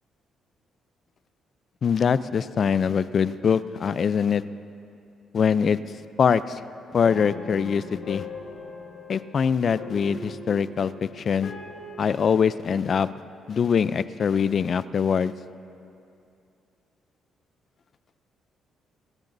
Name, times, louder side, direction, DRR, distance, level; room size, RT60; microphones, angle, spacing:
voice 1, 1.8-4.4 5.3-5.8 6.2-6.6 6.9-8.2 9.1-11.5 12.0-13.1 13.5-15.3, left 6 dB, 50° left, 15 dB, 0.4 m, -23 dB
sound 1, 7.0-12.0, left 2 dB, 70° left, 1.8 m, -40 dB
27.0 x 14.5 x 2.7 m, 2.5 s
cardioid pair, 90°, 0 cm